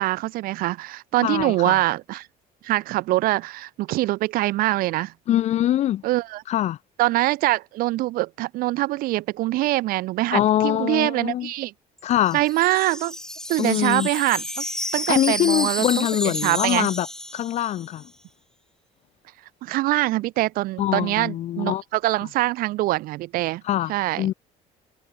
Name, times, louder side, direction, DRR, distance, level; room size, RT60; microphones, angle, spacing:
voice 1, 0.0-2.3 2.6-5.1 6.0-6.4 7.0-11.7 12.3-13.2 13.5-14.6 14.9-16.1 16.4-16.9 19.6-23.6 23.9-24.3, right 18 dB, 70° right, 1.1 m, -24 dB
voice 2, 1.2-1.8 5.3-6.0 6.5-6.8 10.3-11.5 12.0-12.4 13.6-14.1 15.1-17.1 17.3-18.0 20.8-21.8 23.6-24.3, left 12 dB, 45° left, 0.7 m, -23 dB
Wind chime, 12.0-18.0, left 1 dB, 5° left, 1.7 m, -31 dB
cardioid pair, 150°, 15 cm